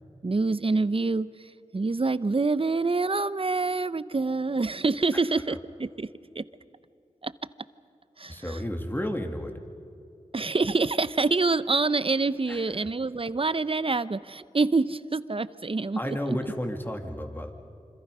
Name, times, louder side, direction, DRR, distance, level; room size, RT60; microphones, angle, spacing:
voice 1, 0.2-6.1 6.3-6.4 7.2-7.3 8.2-8.6 10.3-16.4, right 3 dB, 45° right, 15 dB, 0.8 m, -26 dB
voice 2, 8.3-9.6 12.5-12.6 16.0-17.5, equal, 15° left, 4 dB, 2.7 m, -32 dB
27.0 x 26.0 x 5.6 m, 2.6 s
cardioid pair, 45°, 13 cm